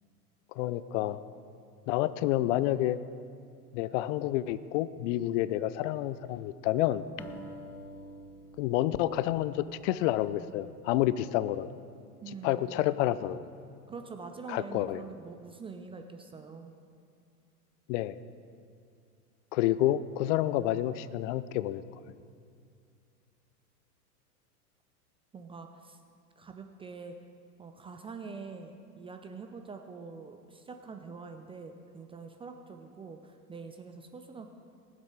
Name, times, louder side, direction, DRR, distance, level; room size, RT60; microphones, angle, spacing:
voice 1, 0.5-1.2 1.9-3.0 3.7-7.0 8.6-11.7 12.4-13.4 14.5-15.0 17.9-18.1 19.5-21.8, left 14 dB, 50° left, 16 dB, 0.6 m, -29 dB
sound 1, 7.2-10.4, equal, 5° left, 1.6 m, -48 dB
voice 2, 12.2-12.8 13.9-16.7 25.3-26.0 26.4-27.1 27.6-34.5, right 4 dB, 15° right, 5 dB, 0.4 m, -45 dB
19.5 x 7.7 x 4.8 m, 2.3 s
hypercardioid pair, 100°, 46 cm